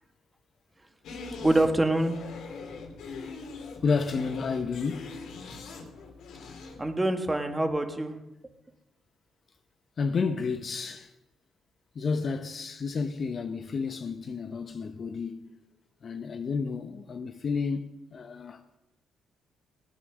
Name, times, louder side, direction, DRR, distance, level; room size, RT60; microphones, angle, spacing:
sound 1, 1.0-6.9, left 4 dB, 80° left, 3.0 m, -42 dB
voice 1, 1.4-2.2 6.8-8.2, right 1 dB, 15° right, 1.9 m, -25 dB
voice 2, 3.6-5.1 5.7-5.9 10.0-11.1 11.9-15.5 16.0-18.6, left 5 dB, 45° left, 0.9 m, -31 dB
18.5 x 9.1 x 6.5 m
cardioid pair, 90°, 0 cm